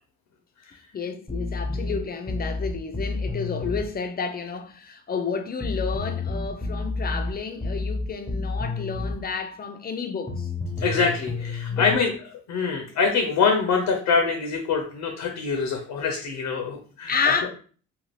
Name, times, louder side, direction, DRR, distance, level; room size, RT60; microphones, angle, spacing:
voice 1, 0.9-10.5 11.7-12.1 17.1-17.5, left 5 dB, 30° left, 0.5 m, -30 dB
sound 1, 1.3-3.9 5.6-9.2 10.3-11.9, left 3 dB, ahead, 0.9 m, -30 dB
voice 2, 10.8-12.1 12.5-17.1 17.4-17.5, left 5 dB, 70° left, 0.6 m, -24 dB
2.5 x 2.3 x 3.2 m
cardioid pair, 90°, 30 cm